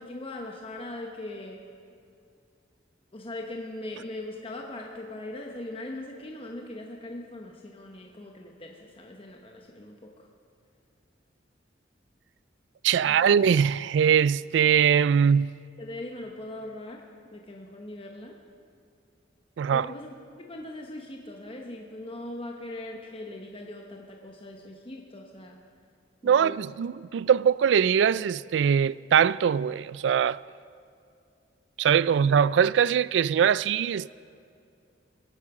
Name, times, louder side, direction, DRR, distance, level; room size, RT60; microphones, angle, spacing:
voice 1, 0.0-1.6 3.1-10.3 13.0-13.3 15.8-17.0 17.3-18.3 19.7-20.2 20.5-25.6 26.2-26.6 32.0-32.2, left 1 dB, 30° left, 1.0 m, -40 dB
voice 2, 12.8-15.5 19.6-19.9 26.2-30.4 31.8-34.1, right 7 dB, 75° right, 0.3 m, -22 dB
22.0 x 8.5 x 6.1 m
head